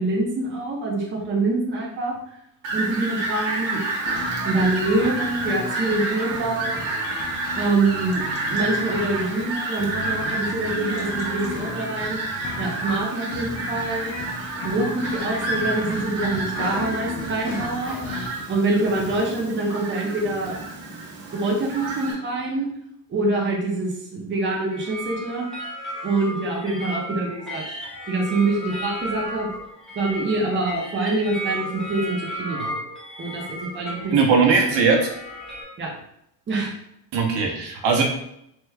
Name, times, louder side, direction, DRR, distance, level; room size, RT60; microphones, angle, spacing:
voice 1, 0.0-2.2 2.7-3.8 4.4-6.8 7.6-12.2 12.6-14.1 14.6-18.0 18.5-20.6 21.3-22.7 23.1-25.5 26.0-27.8 28.1-29.5 29.9-32.7 33.2-34.3 35.8-35.9 36.5-36.7, right 2 dB, 25° right, -2 dB, 0.7 m, -25 dB
Fowl, 2.6-22.1, right 3 dB, 85° right, 1.1 m, -30 dB
sound 1, 4.1-18.3, left 4 dB, 40° left, 0.6 m, -35 dB
sound 2, 24.6-35.6, right 1 dB, ahead, 1.2 m, -34 dB
voice 2, 34.1-35.1 37.1-38.0, right 5 dB, 65° right, 1 dB, 0.8 m, -19 dB
3.4 x 3.0 x 2.3 m, 0.75 s
cardioid pair, 135°, 46 cm